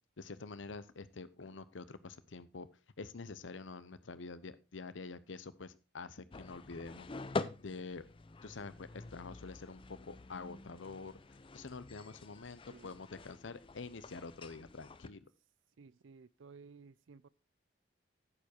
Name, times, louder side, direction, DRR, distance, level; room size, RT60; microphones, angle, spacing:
voice 1, 0.2-2.7 3.0-7.1 7.6-8.1 8.4-11.1 11.5-15.3, left 4 dB, 80° left, 0.8 m, -47 dB
sound 1, 6.3-15.1, left 3 dB, 25° left, 0.5 m, -46 dB
voice 2, 12.7-13.0 15.8-17.3, right 5 dB, 80° right, 0.5 m, -56 dB
9.8 x 7.1 x 4.4 m
head